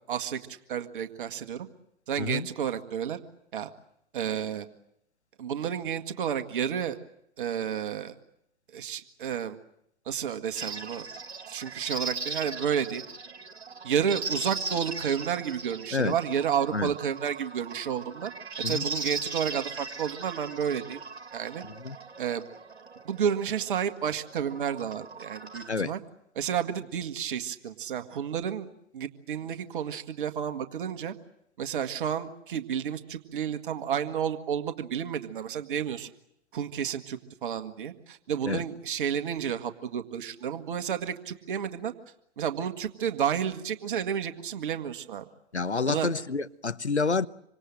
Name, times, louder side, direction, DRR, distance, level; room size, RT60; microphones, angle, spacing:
voice 1, 0.1-0.4 0.7-1.7 2.1-3.2 3.5-3.7 4.1-4.7 5.4-7.0 7.4-8.1 8.7-9.6 10.1-11.1 11.5-13.0 13.8-18.3 18.7-21.0 21.3-21.6 22.2-22.5 23.1-26.0 26.4-28.7 28.9-31.1 31.6-36.1 36.5-41.9 42.4-45.2 45.9-46.1, right 8 dB, 50° right, 1.9 m, -31 dB
sound 1, 10.6-25.7, right 3 dB, 70° right, 2.3 m, -38 dB
voice 2, 21.6-22.0 25.7-25.9 38.5-38.6 45.5-47.3, left 4 dB, 90° left, 1.0 m, -28 dB
26.5 x 25.5 x 7.7 m
figure-of-eight pair, 115°, 33 cm